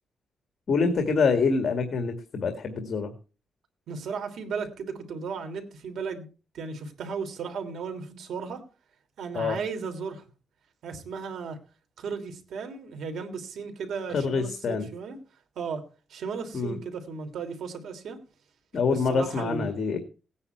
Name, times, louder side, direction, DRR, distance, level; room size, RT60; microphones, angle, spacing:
voice 1, 0.7-3.1 9.3-9.6 14.1-14.9 16.5-16.8 18.7-20.0, left 4 dB, 55° left, 6 dB, 2.0 m, -26 dB
voice 2, 3.9-6.3 6.5-8.6 9.2-10.2 10.8-11.6 12.0-15.2 15.5-18.2 18.9-19.7, right 5 dB, 85° right, 5 dB, 3.1 m, -35 dB
18.0 x 9.7 x 4.6 m, 0.35 s
cardioid pair, 120°, 0 cm